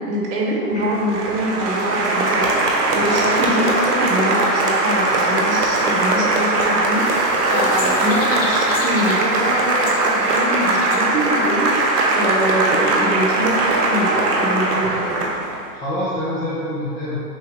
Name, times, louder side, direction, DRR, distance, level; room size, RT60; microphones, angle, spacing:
voice 1, 0.0-15.3, right 1 dB, 45° right, -3 dB, 1.2 m, -24 dB
Applause, 0.8-15.6, right 2 dB, 75° right, 0.9 m, -20 dB
sound 1, 7.0-11.9, left 3 dB, 85° left, 0.8 m, -31 dB
voice 2, 15.7-17.2, left 1 dB, 20° left, -8 dB, 0.5 m, -26 dB
6.5 x 2.2 x 3.2 m, 2.3 s
hypercardioid pair, 115°, 47 cm